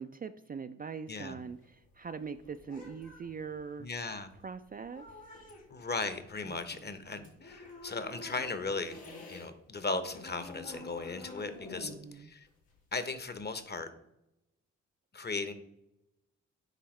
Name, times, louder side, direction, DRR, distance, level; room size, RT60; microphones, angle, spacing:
voice 1, 0.0-3.9 4.4-5.2 6.4-6.8 11.8-12.3, right 6 dB, 30° right, 9 dB, 0.4 m, -42 dB
sound 1, 1.4-9.5 9.8-13.5, left 2 dB, 85° left, 1.9 m, -50 dB
voice 2, 3.8-4.3 5.7-9.0 9.3-12.5 12.9-13.9 15.1-15.5, left 3 dB, 35° left, 10 dB, 0.9 m, -37 dB
9.3 x 3.4 x 3.2 m, 0.86 s
supercardioid pair, 45°, 31 cm